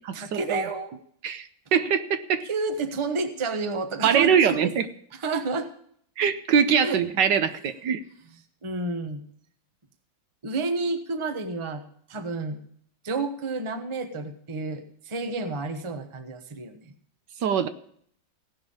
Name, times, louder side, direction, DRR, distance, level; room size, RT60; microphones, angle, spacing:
voice 1, 0.1-1.0 2.4-4.7 5.2-5.7 6.8-7.0 8.6-9.2 10.4-11.8 12.1-12.6 13.0-16.9, right 3 dB, 20° right, 7 dB, 0.8 m, -30 dB
voice 2, 1.2-2.4 4.0-4.9 6.2-8.0 17.4-17.7, right 7 dB, 70° right, 11 dB, 1.3 m, -22 dB
16.5 x 5.8 x 8.7 m, 0.63 s
omnidirectional pair, 2.1 m